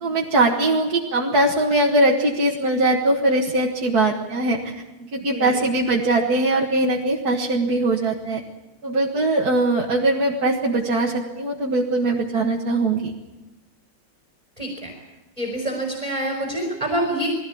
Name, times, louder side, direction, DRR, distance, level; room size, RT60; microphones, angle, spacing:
voice 1, 0.0-4.7 5.1-8.4 8.8-13.1, right 2 dB, 50° right, -1 dB, 2.1 m, -21 dB
voice 2, 5.3-5.7 14.6-14.9 15.4-17.3, right 1 dB, 15° right, 0 dB, 4.1 m, -26 dB
21.5 x 17.0 x 8.6 m, 1.1 s
omnidirectional pair, 2.3 m